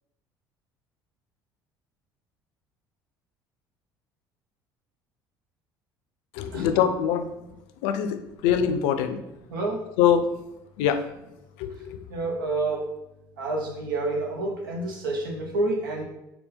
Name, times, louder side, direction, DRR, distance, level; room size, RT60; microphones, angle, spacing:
voice 1, 6.3-7.3 7.8-9.2 10.0-10.2 10.8-11.0 11.6-12.0, left 9 dB, 75° left, 9 dB, 0.4 m, -23 dB
voice 2, 9.5-9.8 11.9-12.9 13.4-16.0, right 2 dB, 90° right, 0 dB, 0.7 m, -28 dB
4.0 x 2.2 x 3.8 m, 0.92 s
hypercardioid pair, 65°, 11 cm